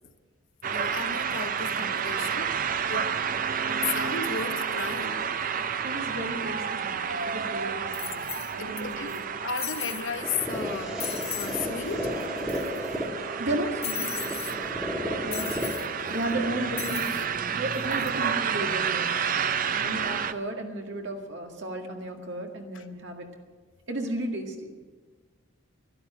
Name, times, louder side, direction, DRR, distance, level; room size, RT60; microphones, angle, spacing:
sound 1, 0.6-20.3, right 7 dB, 40° right, 0.5 m, -30 dB
voice 1, 0.7-2.5 2.9-3.2 3.5-5.3 8.6-11.1 11.3-12.1 15.4-15.6 22.7-22.9, left 5 dB, 65° left, 8 dB, 1.0 m, -35 dB
voice 2, 5.8-8.2 8.5-9.2 13.4-14.1 15.2-15.7 16.1-19.1 19.7-23.3 23.9-24.7, right 1 dB, 55° right, 2 dB, 2.0 m, -34 dB
sound 2, 7.1-7.2 7.9-8.8 9.1-9.2 9.6-10.1 10.5-10.6 11.0-11.6 11.9-12.0 12.2-12.9 13.8-14.6 15.3-15.9 16.8-17.3 17.7-18.1, left 12 dB, 30° left, 0.5 m, -36 dB
sound 3, 10.2-18.2, left 1 dB, 5° right, 1.7 m, -34 dB
12.0 x 11.5 x 8.9 m, 1.4 s
head